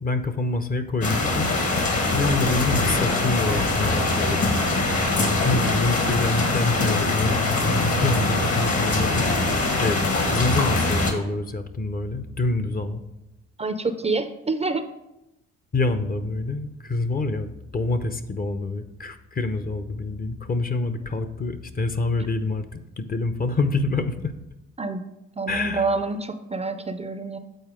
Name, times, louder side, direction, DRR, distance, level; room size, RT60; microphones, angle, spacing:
voice 1, 0.0-1.5 2.1-4.5 5.2-9.3 9.8-13.0 15.7-24.3 25.5-25.9, left 3 dB, 30° left, 10 dB, 0.7 m, -26 dB
sound 1, 1.0-11.1, left 2 dB, 55° left, 1.7 m, -23 dB
voice 2, 13.6-14.9 24.8-25.0 25.4-27.4, right 3 dB, 20° right, 9 dB, 0.5 m, -27 dB
7.9 x 4.2 x 4.9 m, 0.91 s
supercardioid pair, 70°, 30 cm